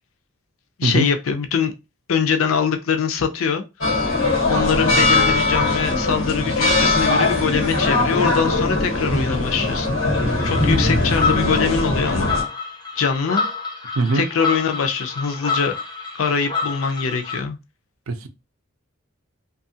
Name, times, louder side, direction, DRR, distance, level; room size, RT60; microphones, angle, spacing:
voice 1, 0.8-1.7 2.1-3.6 4.5-9.9 10.4-12.3 13.0-13.5 14.1-15.8 16.2-17.6, left 6 dB, 85° left, 0.5 m, -23 dB
sound 1, 3.8-12.4, left 2 dB, 70° left, 1.1 m, -20 dB
sound 2, 10.4-17.4, left 4 dB, 20° left, 0.5 m, -28 dB
voice 2, 14.0-14.3 18.1-18.3, right 3 dB, 85° right, 0.5 m, -21 dB
2.7 x 2.3 x 2.7 m
head